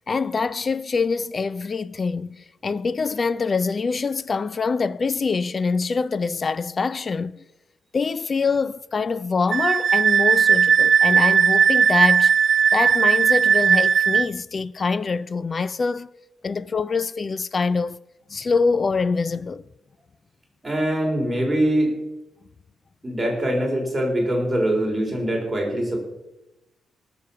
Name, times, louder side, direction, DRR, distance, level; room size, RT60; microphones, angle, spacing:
voice 1, 0.0-7.4 7.9-12.3 12.7-16.1 16.4-18.0 18.3-19.6, left 4 dB, 35° left, 0.3 m, -24 dB
Wind instrument woodwind instrument, 9.5-14.3, right 7 dB, 50° right, 0.4 m, -17 dB
voice 2, 20.6-21.9 23.0-26.0, right 1 dB, 10° right, 3.8 m, -23 dB
19.5 x 7.0 x 5.7 m
cardioid pair, 135°, 0 cm